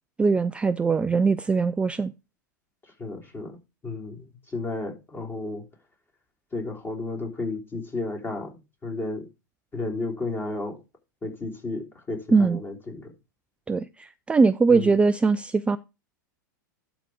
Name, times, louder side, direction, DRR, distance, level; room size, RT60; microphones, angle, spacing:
voice 1, 0.2-2.1 12.3-12.6 13.7-15.8, right 4 dB, 10° right, 0.3 m, -21 dB
voice 2, 3.0-3.6 3.8-5.6 6.5-9.3 9.7-10.8 11.2-13.1 14.7-14.9, left 2 dB, 20° left, 3.3 m, -33 dB
11.5 x 4.0 x 4.8 m
hypercardioid pair, 100°, 11 cm